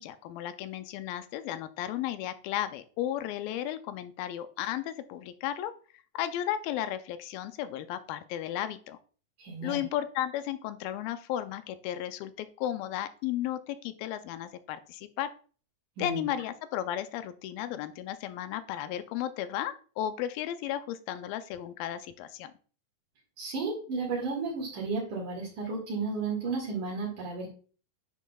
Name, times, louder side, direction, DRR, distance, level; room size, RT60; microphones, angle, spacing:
voice 1, 0.0-5.7 6.1-9.0 9.6-15.3 16.0-22.5, left 11 dB, 85° left, 11 dB, 2.3 m, -34 dB
voice 2, 9.4-9.8 16.0-16.2 23.4-27.5, right 4 dB, 65° right, -3 dB, 3.3 m, -33 dB
10.0 x 6.2 x 2.3 m, 0.41 s
omnidirectional pair, 4.1 m